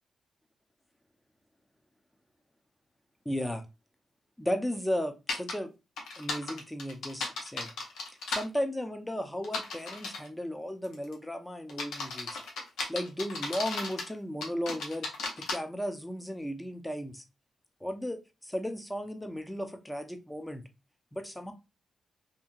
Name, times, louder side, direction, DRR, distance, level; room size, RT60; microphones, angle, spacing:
voice 1, 3.3-3.6 4.4-5.7 6.2-7.7 8.3-12.4 12.9-15.1 15.4-17.2 17.8-20.6 21.1-21.5, equal, 10° left, 0.6 m, -35 dB
sound 1, 5.3-5.5 6.0-8.4 9.4-10.3 10.8-11.1 11.7-14.1 14.4-15.6, left 3 dB, 85° left, 0.7 m, -35 dB
2.8 x 2.7 x 2.4 m
cardioid pair, 65°, 0 cm